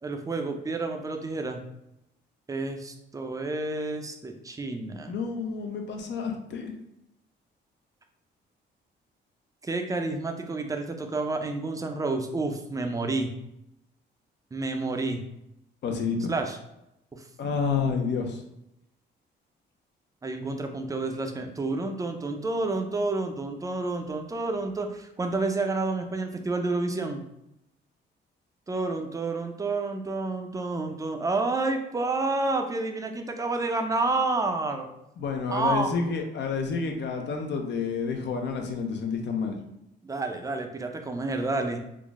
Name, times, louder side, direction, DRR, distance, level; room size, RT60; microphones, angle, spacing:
voice 1, 0.0-1.6 2.5-5.1 9.6-13.3 14.5-15.2 16.3-16.6 17.1-17.2 20.2-27.2 28.7-34.9 35.5-35.9 40.0-41.8, right 3 dB, 15° right, 5 dB, 0.5 m, -29 dB
voice 2, 5.1-6.7 15.8-16.3 17.4-18.4 35.2-39.6, left 5 dB, 65° left, 3 dB, 0.7 m, -29 dB
3.7 x 2.0 x 3.6 m, 0.84 s
cardioid pair, 90°, 20 cm